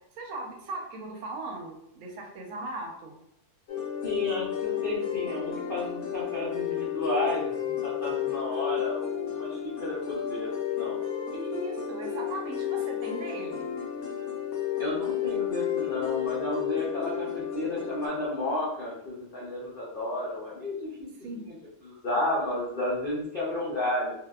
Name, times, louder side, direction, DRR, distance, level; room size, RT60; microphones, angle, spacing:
voice 1, 0.1-3.1 11.3-13.7 21.2-21.4, right 2 dB, 65° right, 1 dB, 0.8 m, -38 dB
sound 1, 3.7-18.1, left 10 dB, 70° left, 1.0 m, -32 dB
voice 2, 4.0-11.0 14.8-20.7 21.2-21.3 21.8-24.1, left 1 dB, 90° left, -6 dB, 0.4 m, -32 dB
2.7 x 2.0 x 2.2 m, 0.73 s
omnidirectional pair, 1.7 m